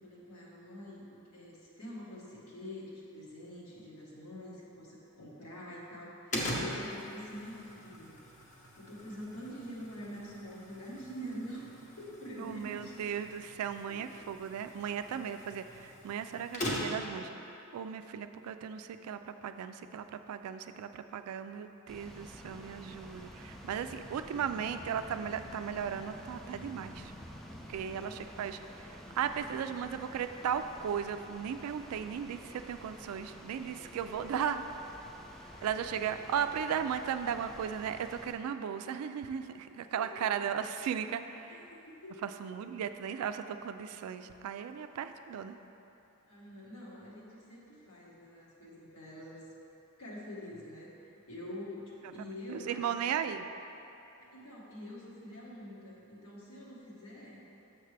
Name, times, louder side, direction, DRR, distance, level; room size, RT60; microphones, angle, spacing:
voice 1, 0.0-8.2 8.8-13.1 13.9-14.0 27.7-28.1 33.7-34.3 35.4-36.0 39.9-40.2 41.5-41.6 42.0-42.3 46.3-49.5 50.0-53.1 54.2-57.4, equal, 75° left, -6 dB, 1.4 m, -46 dB
sound 1, 6.3-17.2, equal, 35° left, 0.8 m, -42 dB
voice 2, 12.4-27.1 27.7-34.6 35.6-41.6 42.2-45.6 52.2-53.5, right 8 dB, 80° right, 12 dB, 0.3 m, -36 dB
sound 2, 21.9-38.3, equal, ahead, 0.4 m, -49 dB
6.7 x 6.5 x 3.3 m, 3.0 s
head